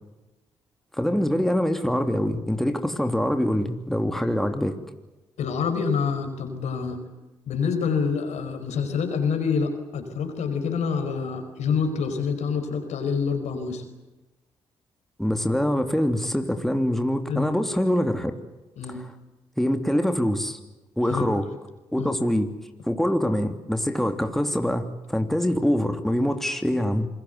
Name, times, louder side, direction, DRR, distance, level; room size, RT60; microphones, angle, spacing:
voice 1, 1.0-4.8 15.2-18.3 18.9-19.0 19.6-20.6 21.0-21.5 21.9-22.5 22.9-27.1, equal, 5° left, 6 dB, 3.2 m, -24 dB
voice 2, 5.4-7.0 7.5-13.8 17.3-17.5 18.8-19.0 21.1-21.3 22.0-22.1, left 5 dB, 75° left, 6 dB, 5.1 m, -27 dB
28.0 x 21.0 x 8.2 m, 1.0 s
hypercardioid pair, 45°, 12 cm